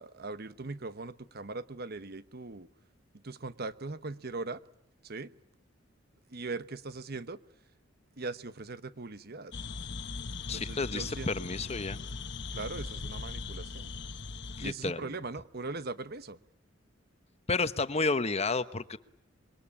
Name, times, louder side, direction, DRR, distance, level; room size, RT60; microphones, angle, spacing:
voice 1, 0.0-2.7 3.2-4.6 5.0-5.3 6.3-7.4 8.2-9.5 10.5-11.3 12.5-13.9 14.6-16.4, right 3 dB, 55° right, 13 dB, 1.1 m, -40 dB
sound 1, 9.5-14.7, left 4 dB, 65° left, 1.2 m, -39 dB
voice 2, 10.5-12.0 14.6-15.1 17.5-19.0, left 3 dB, 35° left, 12 dB, 1.0 m, -31 dB
27.0 x 23.0 x 8.7 m, 0.81 s
head